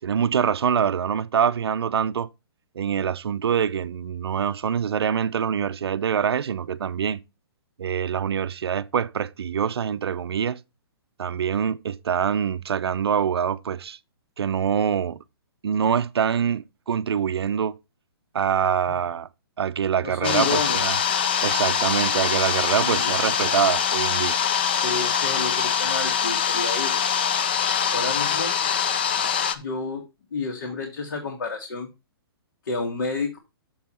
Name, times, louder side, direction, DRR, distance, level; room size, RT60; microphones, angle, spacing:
voice 1, 0.0-2.3 2.8-7.2 7.8-10.6 11.2-14.0 14.4-15.2 15.6-17.7 18.3-19.3 19.6-21.0 21.4-24.3, right 8 dB, 85° right, 0.5 m, -25 dB
voice 2, 20.0-20.8 22.8-23.1 24.8-27.1 27.9-28.6 29.5-30.0 30.3-31.9 32.7-33.4, left 4 dB, 60° left, 1.8 m, -30 dB
sound 1, 20.2-29.5, left 7 dB, 25° left, 0.4 m, -23 dB
7.1 x 5.5 x 4.3 m
hypercardioid pair, 175°, 13 cm